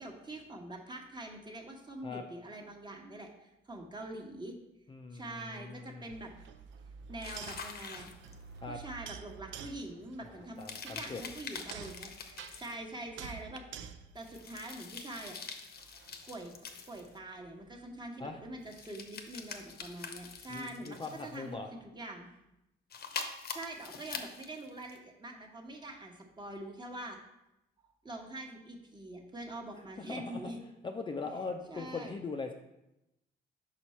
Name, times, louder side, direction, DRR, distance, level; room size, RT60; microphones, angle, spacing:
voice 1, 0.0-4.5 5.1-6.3 7.1-8.1 8.7-13.6 14.1-15.4 16.3-16.5 16.9-22.3 23.2-27.2 28.0-30.6 31.7-32.1, right 1 dB, 20° right, 0 dB, 1.1 m, -44 dB
voice 2, 4.9-6.1 8.6-8.8 10.3-11.2 18.2-18.4 20.5-21.7 30.0-30.5 30.8-32.5, left 4 dB, 25° left, 3 dB, 0.4 m, -41 dB
sound 1, 6.1-15.3 15.8-20.6, right 7 dB, 70° right, 0.5 m, -50 dB
sound 2, 7.2-8.6 10.6-12.7 14.2-17.2 18.6-21.4 22.9-25.0, left 5 dB, 55° left, 0.7 m, -44 dB
5.5 x 4.5 x 4.2 m, 0.89 s
cardioid pair, 90°, 20 cm